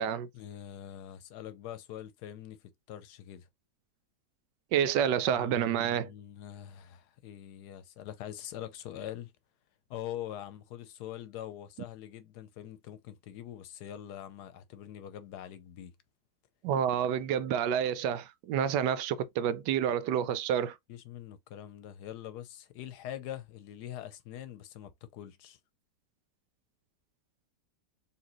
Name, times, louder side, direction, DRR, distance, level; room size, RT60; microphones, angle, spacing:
voice 1, 0.3-3.5 5.3-9.3 9.9-15.9 20.9-25.6, left 11 dB, 75° left, 1.1 m, -44 dB
voice 2, 4.7-6.1 16.6-20.8, right 9 dB, 80° right, 1.2 m, -29 dB
4.3 x 2.9 x 2.9 m
omnidirectional pair, 1.8 m